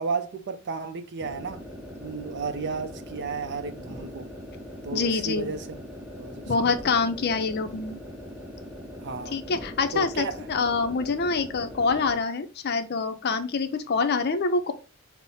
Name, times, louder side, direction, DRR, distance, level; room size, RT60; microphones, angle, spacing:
voice 1, 0.0-1.6 2.0-4.3 4.8-5.8 6.2-6.7 9.0-9.4 9.9-10.4, right 4 dB, 50° right, 0.5 m, -33 dB
sound 1, 1.2-12.3, equal, 5° right, 0.6 m, -41 dB
voice 2, 4.9-5.5 6.5-8.0 9.3-14.7, left 4 dB, 45° left, 0.5 m, -26 dB
5.5 x 2.0 x 4.1 m
head